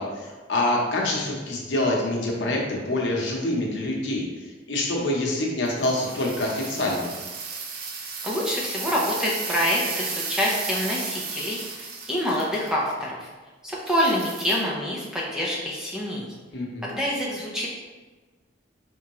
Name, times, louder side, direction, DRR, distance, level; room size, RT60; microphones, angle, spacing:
voice 1, 0.0-4.3 4.7-7.1 16.5-16.9, left 1 dB, 65° left, -2 dB, 0.9 m, -26 dB
sound 1, 5.7-12.8 13.9-14.6, right 5 dB, 50° right, 0.5 m, -34 dB
voice 2, 8.2-13.3 13.6-16.3 16.8-17.7, left 1 dB, 5° right, -5 dB, 0.6 m, -26 dB
4.4 x 3.6 x 3.0 m, 1.3 s
head